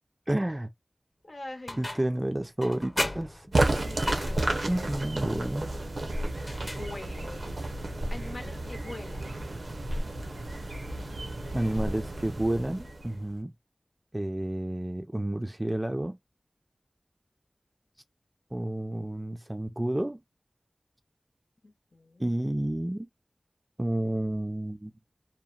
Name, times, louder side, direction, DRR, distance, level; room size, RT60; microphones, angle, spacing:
voice 1, 0.3-0.7 1.8-3.5 4.7-5.7 11.5-13.5 14.1-16.2 18.5-20.2 22.2-23.1 23.8-24.9, right 1 dB, 30° right, 0.4 m, -30 dB
voice 2, 1.2-2.0 3.8-5.1 6.6-7.8 8.1-9.2 21.6-22.3, left 2 dB, 75° left, 0.8 m, -44 dB
sound 1, 1.7-2.2 2.6-4.7 6.4-7.3, left 1 dB, 25° left, 0.8 m, -36 dB
sound 2, 3.5-13.3, right 2 dB, 85° right, 0.6 m, -32 dB
2.8 x 2.1 x 2.4 m
wide cardioid pair, 45°, 0 cm